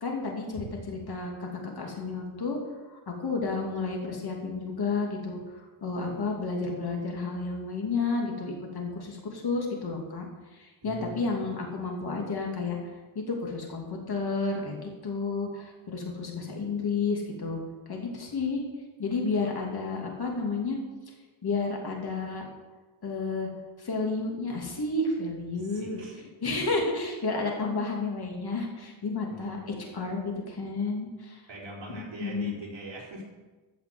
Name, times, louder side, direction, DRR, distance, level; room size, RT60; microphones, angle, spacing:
voice 1, 0.0-2.6 2.9-5.4 5.8-10.3 10.5-12.8 13.1-17.6 17.9-18.6 19.0-20.8 21.4-22.4 23.0-23.5 23.8-26.0 26.4-29.6 29.9-31.4 31.9-32.5, left 3 dB, 50° left, 0 dB, 2.7 m, -31 dB
voice 2, 10.8-11.5 18.4-18.5 25.5-26.2 29.3-29.5 31.5-33.2, equal, 60° right, -3 dB, 4.0 m, -42 dB
14.0 x 5.9 x 7.8 m, 1.2 s
wide cardioid pair, 125°, 48 cm